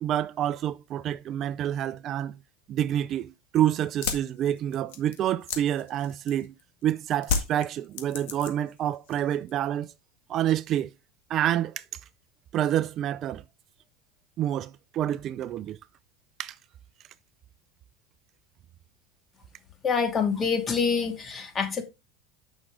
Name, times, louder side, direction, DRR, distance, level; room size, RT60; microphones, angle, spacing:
voice 1, 0.0-2.4 2.7-6.5 6.8-9.9 10.3-10.9 11.3-11.8 12.5-13.4 14.4-15.8 16.4-16.6, right 11 dB, 40° right, 0.5 m, -28 dB
sound 1, 3.9-6.6 7.2-8.8 9.1-9.6, left 6 dB, 75° left, 1.9 m, -32 dB
voice 2, 19.8-21.8, left 5 dB, 25° left, 2.4 m, -26 dB
9.1 x 6.1 x 3.8 m
supercardioid pair, 115°, 0 cm